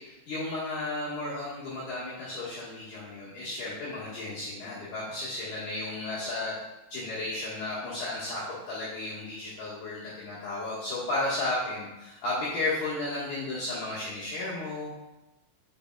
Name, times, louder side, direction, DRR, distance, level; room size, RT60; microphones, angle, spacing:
voice 1, 0.0-6.5 6.9-14.9, left 2 dB, 65° left, -10 dB, 2.8 m, -33 dB
8.3 x 6.8 x 2.3 m, 0.99 s
omnidirectional pair, 6.0 m